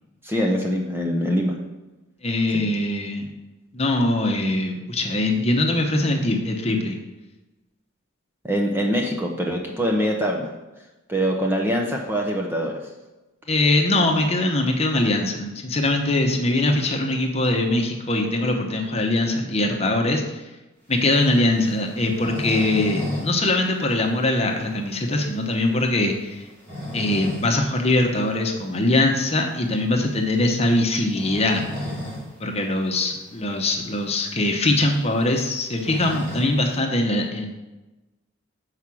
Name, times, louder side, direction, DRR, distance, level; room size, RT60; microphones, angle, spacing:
voice 1, 0.2-1.6 2.5-2.6 8.4-10.5 11.1-12.7, equal, 10° right, 0 dB, 0.7 m, -23 dB
voice 2, 2.2-3.3 3.7-7.0 13.5-20.4 20.9-26.4 26.9-31.6 32.4-37.5, left 2 dB, 30° left, 2 dB, 0.9 m, -22 dB
sound 1, 21.0-23.3 23.6-23.7 24.1-24.2 24.7-24.8 26.4-27.5 27.9-28.0 29.6-29.8 31.0-32.3 32.7-32.8 33.0-33.1 33.8-33.9 34.2-36.8, left 1 dB, 35° right, 2.9 m, -33 dB
7.2 x 4.9 x 6.2 m, 1.1 s
head